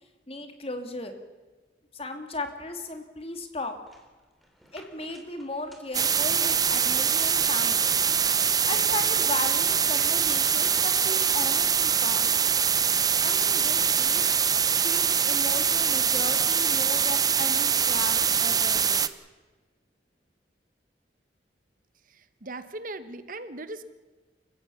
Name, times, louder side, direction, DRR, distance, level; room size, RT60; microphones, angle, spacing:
voice 1, 0.3-1.1 1.9-3.7 4.7-7.9 8.6-12.4 13.2-14.2 14.7-19.0, left 2 dB, 35° left, 6 dB, 2.7 m, -36 dB
sound 1, 3.9-7.2 7.7-11.6, equal, ahead, 3.6 m, -54 dB
sound 2, 5.9-19.1, right 7 dB, 20° right, 0.8 m, -23 dB
voice 2, 22.1-23.8, right 2 dB, 45° right, 12 dB, 1.2 m, -39 dB
29.0 x 16.5 x 7.1 m, 1.3 s
head